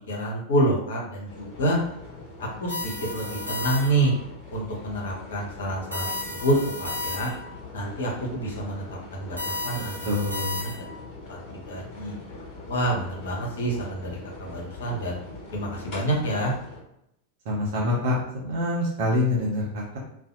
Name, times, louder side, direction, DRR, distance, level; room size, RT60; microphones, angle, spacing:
voice 1, 0.1-1.8 2.4-4.1 4.5-7.3 7.7-8.8 9.1-10.0 11.3-11.4 11.7-12.1 12.7-15.2 15.5-16.5, right 1 dB, 60° left, -2 dB, 0.8 m, -27 dB
sound 1, 1.3-16.8, left 3 dB, 40° left, 1.2 m, -42 dB
sound 2, 2.7-4.2 5.9-7.6 9.4-11.0, left 2 dB, 90° right, 0.6 m, -33 dB
voice 2, 10.1-10.7 17.5-18.1 18.4-20.0, left 1 dB, 50° right, -4 dB, 0.7 m, -26 dB
2.5 x 2.1 x 2.6 m, 0.78 s
figure-of-eight pair, 90°, 0 cm